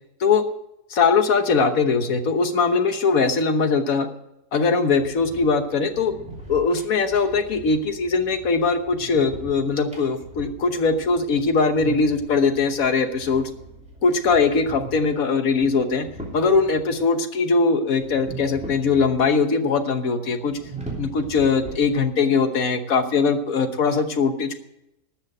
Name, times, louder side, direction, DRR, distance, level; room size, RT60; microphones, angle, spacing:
voice 1, 0.9-4.1 4.5-6.1 6.5-13.5 14.0-16.1 16.3-20.6 21.0-24.5, left 4 dB, 65° left, 8 dB, 1.5 m, -21 dB
sound 1, 4.9-17.1 17.9-19.4 19.7-19.8 20.4-22.3, right 2 dB, 5° right, 2.8 m, -40 dB
13.0 x 6.5 x 8.9 m, 0.87 s
omnidirectional pair, 1.7 m